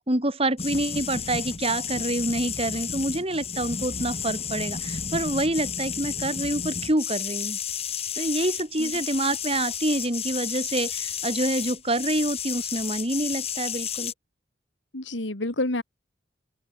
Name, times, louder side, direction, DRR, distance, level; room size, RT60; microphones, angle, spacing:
voice 1, 0.0-7.6 8.2-14.1, right 1 dB, 30° right, 3.7 m, -27 dB
sound 1, 0.6-14.1, left 7 dB, 35° left, 2.8 m, -32 dB
voice 2, 14.9-15.8, left 2 dB, 90° left, 3.0 m, -29 dB
open air
head